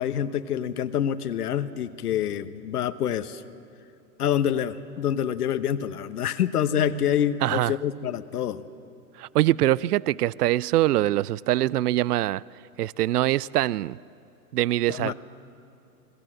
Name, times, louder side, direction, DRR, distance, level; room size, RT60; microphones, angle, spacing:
voice 1, 0.0-3.4 4.2-8.6 14.9-15.1, left 9 dB, 65° left, 1.1 m, -26 dB
voice 2, 7.4-7.7 9.2-12.4 12.8-14.0 14.5-15.1, right 14 dB, 70° right, 0.6 m, -23 dB
29.0 x 21.5 x 7.6 m
figure-of-eight pair, 110°, 49 cm